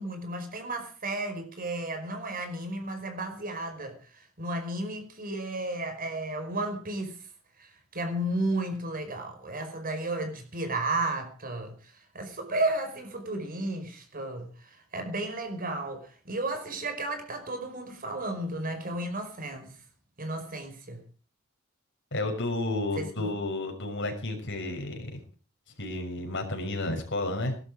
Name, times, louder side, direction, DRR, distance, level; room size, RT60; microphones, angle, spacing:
voice 1, 0.0-7.2 7.6-19.7 20.2-21.0 23.0-23.3, right 2 dB, 45° right, 5.2 m, -33 dB
voice 2, 22.1-25.2 25.8-27.6, left 2 dB, 60° left, 6.3 m, -31 dB
19.0 x 12.5 x 5.0 m
head